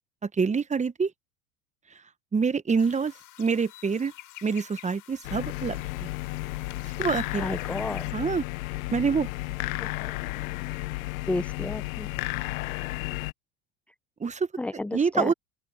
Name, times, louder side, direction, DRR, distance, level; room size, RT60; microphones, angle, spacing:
voice 1, 0.2-1.1 2.3-3.1 3.4-4.1 4.4-6.1 7.0-7.6 8.1-8.4 8.9-9.3 14.2-14.5 14.9-15.3, right 5 dB, 15° right, 1.3 m, -26 dB
sound 1, 2.8-8.1, left 15 dB, 45° left, 6.1 m, -48 dB
sound 2, 5.2-13.3, left 20 dB, 70° left, 0.9 m, -33 dB
voice 2, 7.4-8.1 10.0-10.1 11.3-12.1 14.6-15.3, left 2 dB, 5° left, 0.5 m, -31 dB
open air
hypercardioid pair, 90°, 42 cm